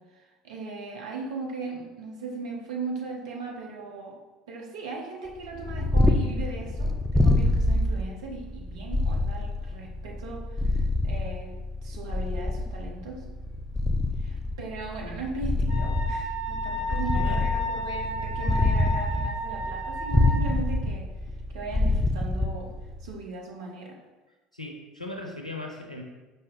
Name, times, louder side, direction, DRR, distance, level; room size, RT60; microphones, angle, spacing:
voice 1, 0.0-4.2 4.5-13.2 14.2-21.1 21.5-22.7 23.0-24.0, right 3 dB, 65° right, 0 dB, 0.7 m, -38 dB
Purr, 5.4-23.1, left 2 dB, 5° left, 0.3 m, -26 dB
Wind instrument woodwind instrument, 15.7-20.6, left 1 dB, 30° right, 0.8 m, -33 dB
voice 2, 16.8-17.4 24.5-26.0, left 2 dB, 90° left, 1 dB, 0.4 m, -39 dB
5.3 x 2.1 x 3.7 m, 1.1 s
figure-of-eight pair, 65°, 4 cm